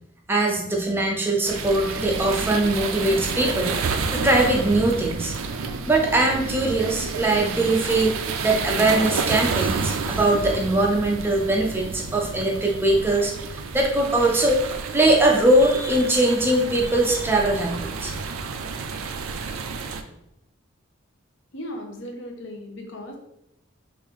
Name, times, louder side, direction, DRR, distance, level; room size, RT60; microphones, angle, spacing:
voice 1, 0.3-5.3 5.9-8.1 8.4-14.7 14.9-18.1, right 1 dB, 10° right, 0 dB, 0.4 m, -21 dB
sound 1, 1.4-20.0, right 4 dB, 85° right, 0.4 m, -30 dB
voice 2, 21.5-23.2, left 1 dB, 60° left, 2 dB, 0.6 m, -36 dB
3.2 x 2.5 x 3.5 m, 0.82 s
head